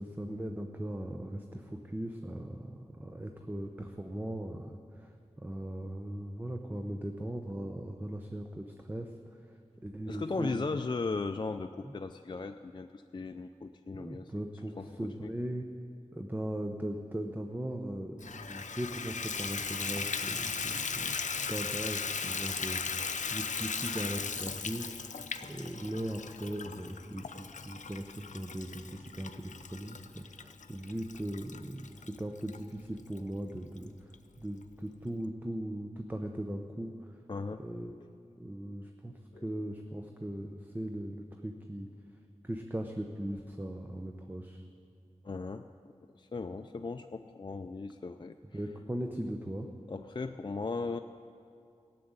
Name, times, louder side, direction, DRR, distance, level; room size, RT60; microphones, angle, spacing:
voice 1, 0.0-5.1 5.4-9.1 9.8-10.8 11.8-11.9 13.9-15.6 16.1-21.2 21.5-25.2 25.4-34.1 34.4-37.1 37.6-37.9 38.4-39.1 39.4-41.9 42.4-44.6 48.5-49.7, right 1 dB, 15° right, 4 dB, 0.8 m, -39 dB
voice 2, 10.1-14.3 14.8-14.9 15.2-15.3 37.3-37.6 39.3-39.4 45.2-48.3 49.9-51.0, left 3 dB, 40° left, 7 dB, 0.4 m, -37 dB
Water tap faucet / Bathtub (filling or washing), 18.2-32.6 33.2-33.3 33.8-33.9 34.1-34.2, left 5 dB, 80° left, 0.6 m, -37 dB
15.5 x 7.6 x 9.6 m, 2.5 s
wide cardioid pair, 75°, 12 cm